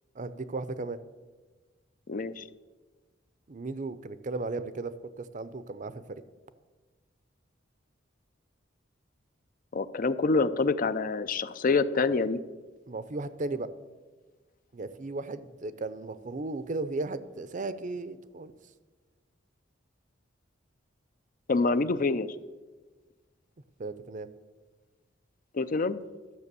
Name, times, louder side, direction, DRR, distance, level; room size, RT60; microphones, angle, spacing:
voice 1, 0.1-1.0 3.5-6.2 12.9-13.7 14.7-18.5 23.8-24.3, right 3 dB, 40° right, 14 dB, 0.6 m, -35 dB
voice 2, 2.1-2.4 9.7-12.4 21.5-22.3 25.5-26.0, left 3 dB, 45° left, 14 dB, 0.5 m, -26 dB
12.5 x 7.1 x 6.8 m, 1.3 s
head